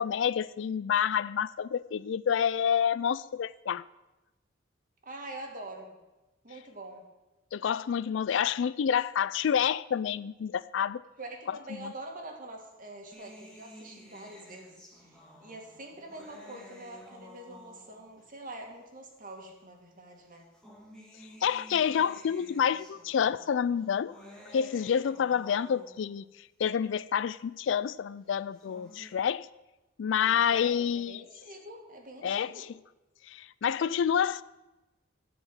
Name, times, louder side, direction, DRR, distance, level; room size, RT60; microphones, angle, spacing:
voice 1, 0.0-3.8 7.5-11.0 11.5-11.6 11.8-11.9 21.4-24.1 24.5-26.2 26.6-29.5 30.0-31.2 32.2-32.7 33.3-34.4, left 8 dB, 65° left, 0.4 m, -28 dB
voice 2, 5.0-6.0 6.4-7.0 11.2-20.5 30.2-32.7, right 2 dB, 45° right, 2.1 m, -45 dB
sound 1, 13.1-18.2 19.1-19.2 20.3-26.2 28.4-29.1, equal, 5° left, 2.0 m, -52 dB
13.5 x 5.0 x 9.0 m
head